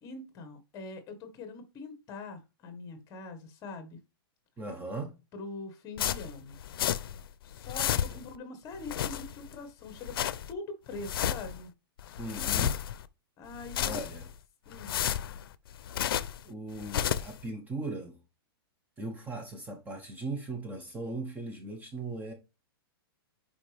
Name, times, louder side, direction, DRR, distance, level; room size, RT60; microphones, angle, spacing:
voice 1, 0.0-4.0 5.3-6.6 7.4-11.7 12.0-12.2 13.4-14.0 14.6-15.0, left 3 dB, 25° left, 1.7 m, -43 dB
voice 2, 4.6-5.1 12.2-12.8 13.8-14.3 16.4-18.2 19.0-22.3, right 2 dB, 15° right, 1.1 m, -38 dB
sound 1, 6.0-7.3 7.5-8.4 8.7-9.6 9.9-10.5 10.9-11.6 12.0-13.1 13.5-14.3 14.7-16.4 16.8-17.4, left 10 dB, 65° left, 0.6 m, -32 dB
9.9 x 4.9 x 3.5 m
hypercardioid pair, 155°, 13 cm